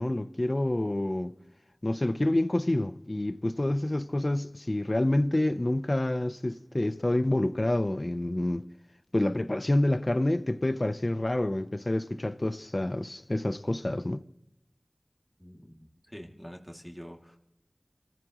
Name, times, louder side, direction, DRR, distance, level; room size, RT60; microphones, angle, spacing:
voice 1, 0.0-1.3 1.8-8.6 9.1-14.2, left 1 dB, 40° left, 0.8 m, -28 dB
voice 2, 15.4-17.4, equal, ahead, 2.6 m, -46 dB
29.5 x 15.0 x 3.1 m
wide cardioid pair, 50°, 0 cm